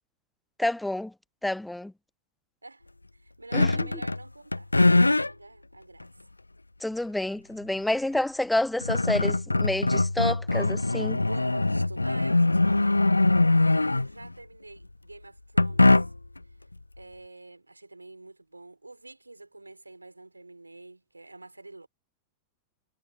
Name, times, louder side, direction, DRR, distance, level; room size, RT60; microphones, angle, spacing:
voice 1, 0.6-1.1 1.4-1.9 3.5-3.9 6.8-11.2, left 1 dB, 5° left, 0.6 m, -29 dB
voice 2, 2.6-6.3 11.1-13.4 13.7-16.1 16.6-16.7 17.0-21.9, right 2 dB, 85° right, 6.6 m, -47 dB
sound 1, 3.5-4.2 4.5-5.3 6.0-6.1 8.2-8.3 8.6-14.3 15.6-16.4, left 2 dB, 85° left, 0.6 m, -22 dB
figure-of-eight pair, 90°, 0 cm